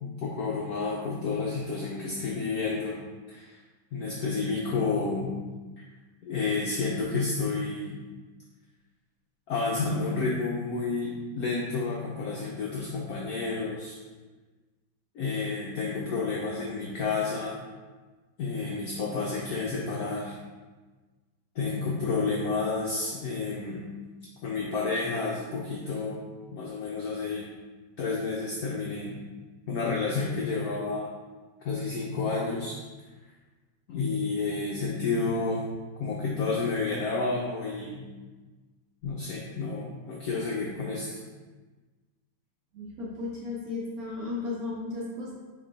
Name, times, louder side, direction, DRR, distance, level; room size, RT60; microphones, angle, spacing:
voice 1, 0.0-3.0 3.3-3.6 3.9-5.3 5.8-5.9 6.2-8.0 9.5-14.0 15.1-17.6 18.4-20.4 21.6-23.9 24.4-26.2 26.5-27.5 28.0-29.2 29.7-31.1 31.6-32.8 33.9-35.6 36.0-38.0 39.0-41.2, left 4 dB, 80° left, -3 dB, 0.8 m, -30 dB
voice 2, 42.7-45.3, left 3 dB, 65° right, -4 dB, 1.0 m, -35 dB
3.9 x 3.0 x 3.8 m, 1.3 s
omnidirectional pair, 2.1 m